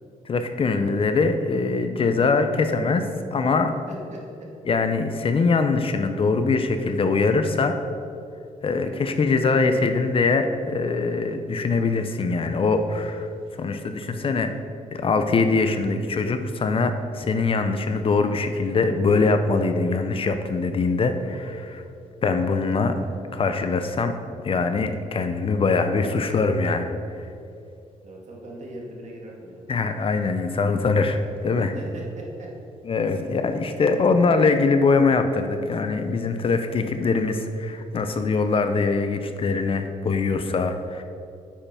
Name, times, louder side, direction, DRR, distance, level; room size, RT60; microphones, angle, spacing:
voice 1, 0.3-3.8 4.7-7.7 8.6-13.3 13.6-14.5 14.9-21.8 22.2-24.2 24.4-27.3 29.7-31.7 32.8-41.0, left 4 dB, 40° left, 8 dB, 0.6 m, -23 dB
voice 2, 3.9-4.5 8.7-9.0 28.0-29.6 31.6-32.5 33.2-33.4, right 1 dB, 60° right, -2 dB, 2.2 m, -40 dB
8.4 x 5.7 x 5.6 m, 2.6 s
cardioid pair, 115°, 14 cm